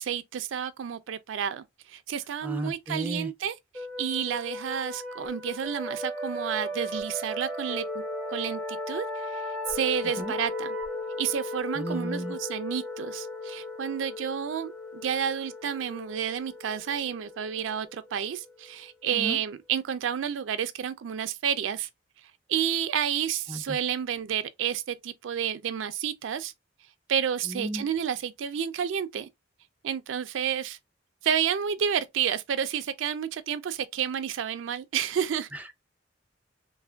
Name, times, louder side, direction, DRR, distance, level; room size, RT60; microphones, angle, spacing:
voice 1, 0.0-8.0 8.3-10.7 11.2-21.9 22.5-26.5 27.1-29.3 29.8-30.8 31.2-35.5, right 8 dB, 75° right, 0.4 m, -30 dB
voice 2, 2.4-3.3 10.2-10.3 11.8-12.4 19.1-19.4 23.5-23.8 27.5-27.9 35.5-35.7, right 1 dB, 10° right, 0.3 m, -34 dB
sound 1, 3.7-19.1, left 1 dB, 10° left, 0.7 m, -36 dB
3.3 x 2.1 x 2.2 m
head